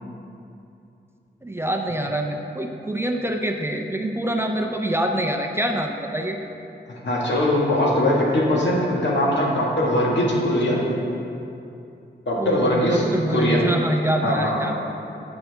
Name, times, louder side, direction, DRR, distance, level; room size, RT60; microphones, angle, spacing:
voice 1, 1.4-6.4 12.4-14.8, right 1 dB, 15° right, 2 dB, 0.4 m, -25 dB
voice 2, 7.0-10.8 12.3-13.0 13.3-13.7 14.2-14.7, left 1 dB, 75° left, -4 dB, 1.8 m, -21 dB
10.0 x 7.9 x 3.5 m, 2.7 s
wide cardioid pair, 175°, 19 cm